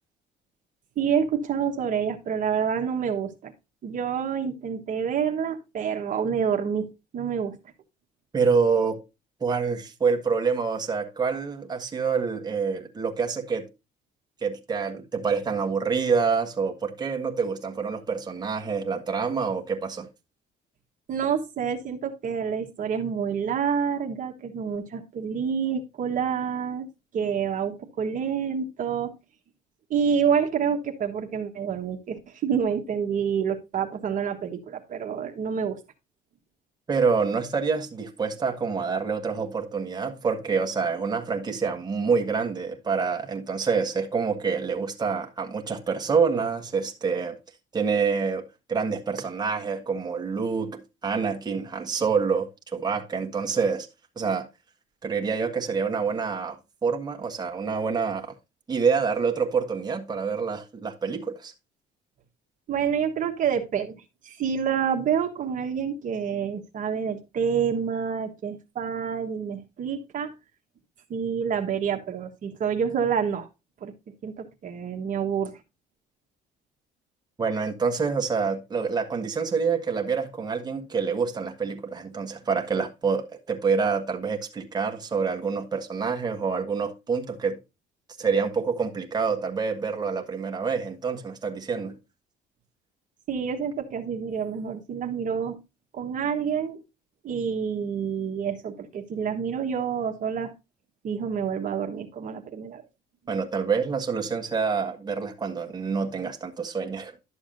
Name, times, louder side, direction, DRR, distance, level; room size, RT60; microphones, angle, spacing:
voice 1, 1.0-3.5 3.8-6.9 7.1-7.6 21.1-26.9 27.1-29.1 29.9-35.8 62.7-64.0 64.2-70.3 71.1-73.5 73.8-73.9 74.2-75.6 93.3-95.6 95.9-96.8 97.2-100.5 101.0-102.8, right 7 dB, 50° right, 1.3 m, -28 dB
voice 2, 8.3-9.0 9.4-13.7 14.4-20.1 36.9-47.4 47.7-53.9 54.2-54.5 55.0-58.3 58.7-61.5 77.4-87.6 88.2-91.9 103.3-107.1, right 5 dB, 25° right, 1.4 m, -27 dB
11.5 x 7.1 x 2.6 m
cardioid pair, 110°, 17 cm